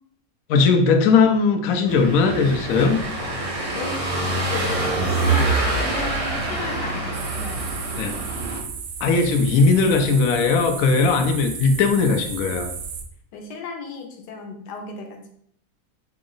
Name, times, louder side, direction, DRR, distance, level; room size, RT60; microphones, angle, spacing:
voice 1, 0.5-3.0 8.0-8.1 9.0-12.7, left 4 dB, 70° left, 5 dB, 0.9 m, -18 dB
Car passing by / Engine, 1.9-8.6, right 2 dB, 40° right, 0.5 m, -25 dB
voice 2, 3.7-8.0 13.3-15.4, left 5 dB, 90° left, 3 dB, 1.3 m, -35 dB
sound 1, 7.1-13.0, right 6 dB, 65° right, 0.9 m, -34 dB
4.5 x 2.0 x 3.8 m, 0.66 s
omnidirectional pair, 1.8 m